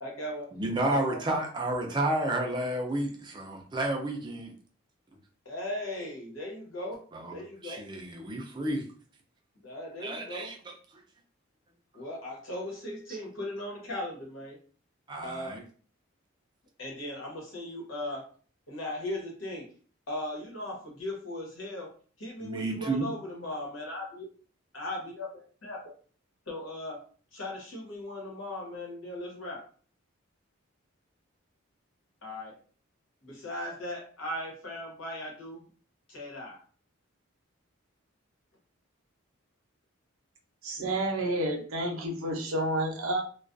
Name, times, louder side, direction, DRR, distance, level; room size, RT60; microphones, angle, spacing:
voice 1, 0.0-0.5 0.8-1.2 5.4-7.8 9.5-10.5 11.9-14.6 15.2-15.6 16.8-18.3 18.7-19.7 20.1-24.3 24.7-25.3 25.6-25.9 26.5-29.7 32.2-32.6 33.2-35.6 36.1-36.6, left 1 dB, 75° left, 1.0 m, -38 dB
voice 2, 0.5-4.5 7.1-8.9 10.0-10.7 15.1-15.6 22.4-23.1, right 1 dB, 20° right, 0.4 m, -31 dB
voice 3, 40.6-43.2, right 1 dB, 85° right, 0.7 m, -30 dB
2.3 x 2.2 x 2.5 m
head